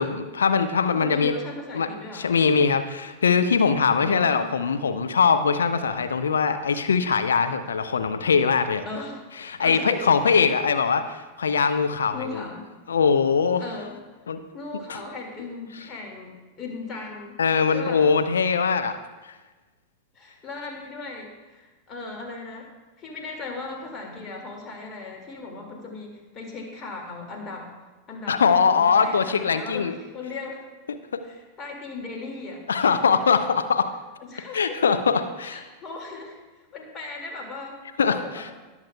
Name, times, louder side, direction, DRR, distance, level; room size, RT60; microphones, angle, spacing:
voice 1, 0.0-1.3 1.7-1.9 2.1-8.8 9.4-12.4 12.9-13.6 14.3-14.4 14.9-15.0 17.4-19.0 19.2-19.3 28.3-29.9 31.1-31.2 32.7-33.9 34.5-35.6 38.0-38.5, left 5 dB, 70° left, 9 dB, 0.5 m, -22 dB
voice 2, 0.9-2.4 4.0-4.5 8.9-9.2 9.6-10.6 12.1-12.7 13.6-14.0 14.5-17.4 17.7-18.1 20.2-22.7 23.0-27.7 28.1-30.6 31.2-32.6 34.2-34.8 35.4-36.4 36.7-38.5, left 3 dB, 25° left, 1 dB, 2.0 m, -37 dB
18.5 x 7.3 x 2.2 m, 1.2 s
figure-of-eight pair, 90°, 0 cm